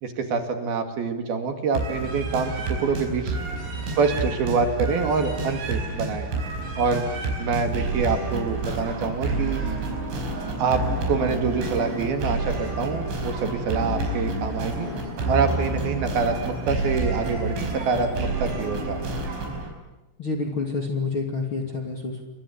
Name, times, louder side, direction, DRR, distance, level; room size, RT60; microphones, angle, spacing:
voice 1, 0.0-3.4 4.0-6.3 6.8-7.1 7.4-9.6 10.6-14.9 15.3-19.2, right 5 dB, 60° right, 7 dB, 3.7 m, -26 dB
sound 1, 1.7-19.7, right 2 dB, 75° right, 7.4 m, -29 dB
voice 2, 20.2-22.2, left 4 dB, 35° left, 2 dB, 2.5 m, -28 dB
29.5 x 23.5 x 8.5 m, 1.0 s
omnidirectional pair, 5.5 m